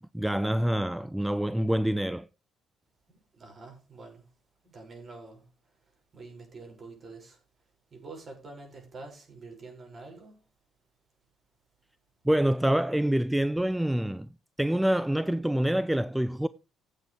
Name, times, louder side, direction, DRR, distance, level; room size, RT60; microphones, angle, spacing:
voice 1, 0.1-2.3 12.2-14.3 14.6-16.5, right 1 dB, 5° right, 0.5 m, -26 dB
voice 2, 3.1-4.2 4.6-5.5 5.8-7.4 7.9-10.4, right 3 dB, 40° right, 6.7 m, -47 dB
15.5 x 7.9 x 3.6 m
hypercardioid pair, 50°, 0 cm